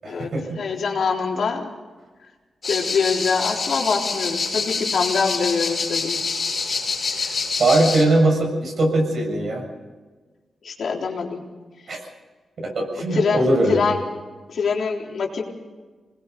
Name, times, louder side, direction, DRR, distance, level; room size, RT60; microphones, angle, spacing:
voice 1, 0.0-0.6 7.6-9.6 11.9-12.0 12.6-13.9, right 2 dB, 60° right, 2 dB, 7.1 m, -20 dB
voice 2, 0.6-1.7 2.7-6.2 7.1-7.3 10.6-11.4 13.1-14.0 14.5-15.4, left 5 dB, 70° left, 0 dB, 3.7 m, -24 dB
sound 1, 2.6-8.0, left 4 dB, 50° left, 6.1 m, -26 dB
25.0 x 20.5 x 5.4 m, 1.3 s
wide cardioid pair, 105°, 0 cm